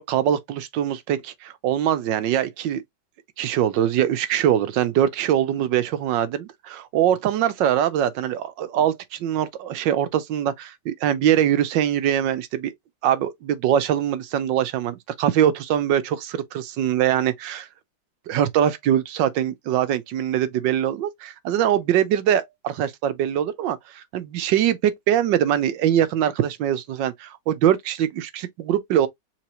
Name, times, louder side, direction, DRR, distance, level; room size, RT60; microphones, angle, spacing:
voice 1, 0.0-2.8 3.4-12.7 13.0-17.7 18.3-29.1, right 10 dB, 80° right, 1.5 m, -22 dB
4.6 x 3.5 x 3.0 m
omnidirectional pair, 2.0 m